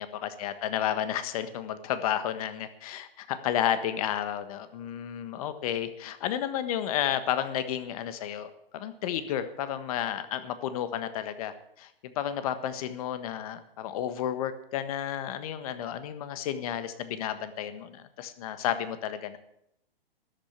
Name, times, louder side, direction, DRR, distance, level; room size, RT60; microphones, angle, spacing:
voice 1, 0.0-19.4, left 10 dB, 40° left, 11 dB, 1.4 m, -32 dB
13.0 x 8.8 x 9.0 m, 0.78 s
hypercardioid pair, 150°, 30 cm